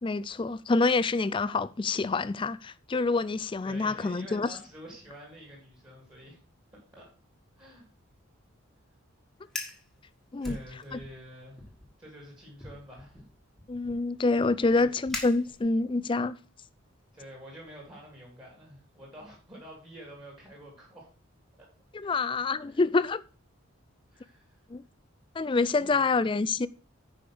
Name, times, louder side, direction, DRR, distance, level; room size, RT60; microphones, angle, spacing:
voice 1, 0.0-4.5 10.3-10.6 10.9-11.0 13.7-16.4 21.9-23.2 24.7-24.8 25.4-26.7, left 3 dB, 25° left, 0.3 m, -27 dB
voice 2, 3.6-6.4 6.7-7.1 7.6-7.8 10.4-11.6 12.0-13.2 14.8-14.9 17.1-21.1 21.6-21.7 22.0-22.3 22.7-22.8 24.1-24.6 25.7-26.2, equal, 20° right, 3.0 m, -48 dB
Fire, 9.4-9.8 10.4-11.2 11.6-11.9 12.6-15.9, left 2 dB, ahead, 1.6 m, -42 dB
10.0 x 5.0 x 6.0 m
head